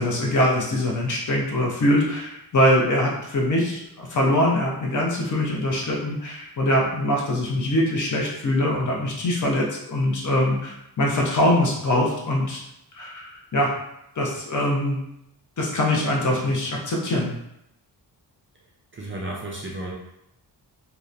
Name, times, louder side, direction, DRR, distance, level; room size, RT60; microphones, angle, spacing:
voice 1, 0.0-12.6 12.9-13.7 14.2-15.0 15.6-17.3, left 1 dB, 45° left, -2 dB, 0.6 m, -23 dB
voice 2, 18.9-19.9, right 1 dB, 30° right, -3 dB, 0.4 m, -33 dB
2.8 x 2.1 x 2.4 m, 0.81 s
wide cardioid pair, 135°, 42 cm